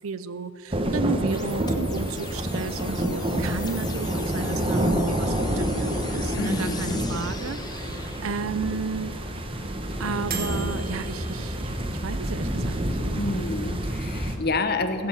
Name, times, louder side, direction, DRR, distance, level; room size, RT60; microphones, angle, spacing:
voice 1, 0.0-9.2 10.0-13.4, right 5 dB, 70° right, 14 dB, 0.5 m, -33 dB
sound 1, 0.7-14.4, equal, 25° right, 1.1 m, -28 dB
sound 2, 1.3-8.3, left 5 dB, 20° left, 0.9 m, -41 dB
sound 3, 4.2-13.2, right 3 dB, 45° right, 1.9 m, -43 dB
voice 2, 6.3-7.0 13.1-15.1, left 3 dB, 45° left, 9 dB, 0.9 m, -28 dB
16.5 x 7.9 x 7.3 m, 2.9 s
head